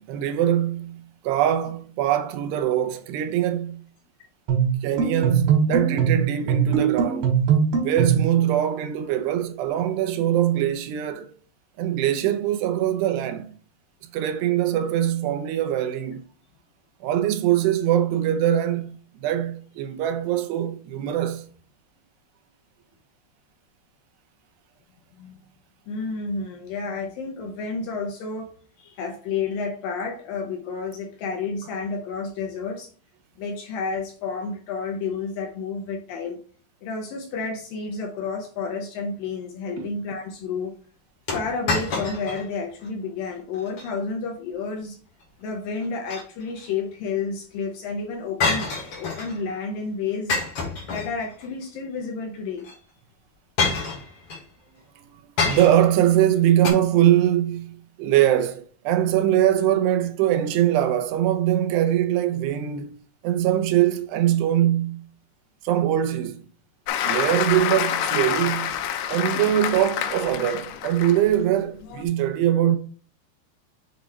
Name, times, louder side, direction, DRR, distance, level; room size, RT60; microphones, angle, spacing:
voice 1, 0.0-3.8 4.8-7.3 7.8-11.3 11.8-13.5 14.1-16.2 17.0-21.5 39.8-39.9 55.0-55.1 55.4-62.9 63.2-65.0 65.6-66.4 67.0-68.7 69.1-72.8, right 11 dB, 85° right, 2.8 m, -22 dB
sound 1, 4.5-8.3, right 7 dB, 65° right, 3.7 m, -21 dB
voice 2, 25.9-28.5 28.8-32.9 33.4-36.4 36.8-40.7 41.3-45.0 45.4-50.4 50.9-52.7, left 4 dB, 75° left, 2.3 m, -30 dB
sound 2, 41.3-42.5 42.8-42.9 43.5-43.9 45.8-46.7 48.4-49.4 50.3-51.5 52.6-52.7 53.6-54.4 55.4-56.0 56.6-56.7, left 4 dB, 50° left, 1.8 m, -27 dB
Applause, 66.9-71.3 71.8-72.0, left 10 dB, 90° left, 2.8 m, -27 dB
7.3 x 4.0 x 3.2 m
omnidirectional pair, 4.8 m